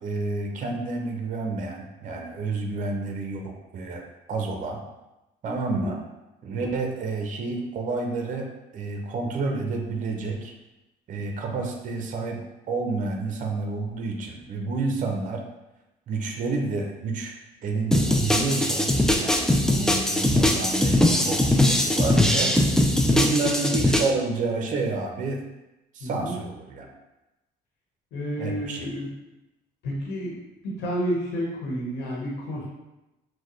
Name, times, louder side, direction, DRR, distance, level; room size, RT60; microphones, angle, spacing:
voice 1, 0.0-4.0 4.3-4.8 5.4-6.0 6.4-8.5 8.7-10.5 11.1-12.4 12.7-15.4 16.1-17.3 17.6-22.6 23.1-25.4 25.9-26.9 28.4-28.9, right 3 dB, 50° right, 2 dB, 0.7 m, -29 dB
sound 1, 17.9-24.1, left 1 dB, 5° left, 0.4 m, -21 dB
voice 2, 26.0-26.4 28.1-29.1 29.8-30.4 30.6-32.7, equal, 80° left, -3 dB, 1.2 m, -30 dB
6.1 x 2.2 x 3.1 m, 0.99 s
cardioid pair, 110°, 17 cm